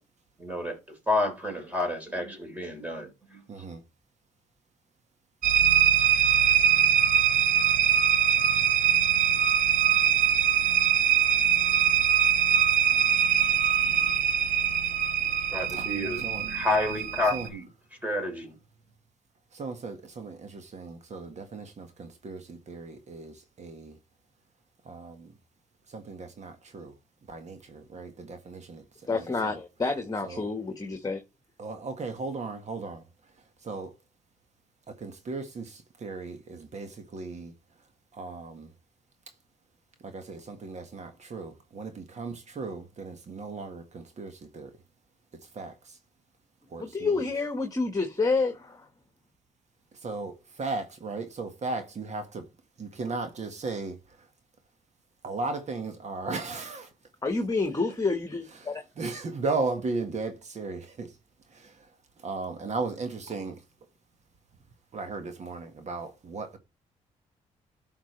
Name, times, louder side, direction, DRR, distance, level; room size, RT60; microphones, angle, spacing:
voice 1, 0.4-0.8 1.1-3.4 15.5-16.2 16.5-17.7 18.0-18.6, left 2 dB, 10° right, 3.7 m, -29 dB
voice 2, 3.5-3.8 15.7-16.6 17.3-17.5 19.5-24.0 24.8-25.3 25.9-26.9 27.3-28.8 29.4-29.6 30.2-30.5 31.6-33.0 33.6-33.9 35.0-37.5 38.1-38.7 40.0-44.7 45.5-45.7 46.7-47.2 50.0-52.4 52.8-54.0 55.2-56.9 59.0-61.1 61.6-61.7 62.2-63.6 64.9-66.6, right 3 dB, 50° right, 1.7 m, -36 dB
sound 1, 5.4-17.5, right 9 dB, 75° right, 0.9 m, -23 dB
voice 3, 29.1-31.2 46.8-48.8 57.2-58.7, left 3 dB, 25° left, 1.6 m, -28 dB
11.5 x 5.9 x 3.3 m
cardioid pair, 65°, 15 cm